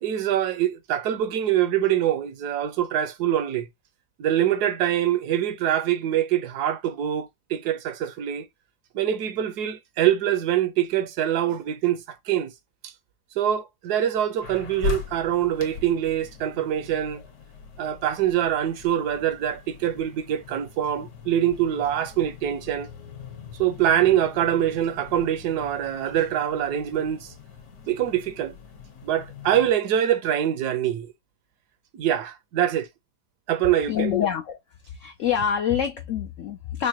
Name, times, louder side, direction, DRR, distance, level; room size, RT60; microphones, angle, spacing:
voice 1, 0.0-3.7 4.2-8.5 8.9-12.5 13.4-17.2 17.8-22.9 23.6-27.3 27.8-28.6 29.0-31.1 31.9-32.9 33.5-34.1, right 11 dB, 75° right, 1.1 m, -24 dB
sound 1, 14.4-29.7, left 7 dB, 60° left, 1.4 m, -40 dB
voice 2, 33.9-34.6 34.9-36.9, left 9 dB, 80° left, 0.7 m, -26 dB
4.6 x 2.2 x 2.8 m
omnidirectional pair, 1.9 m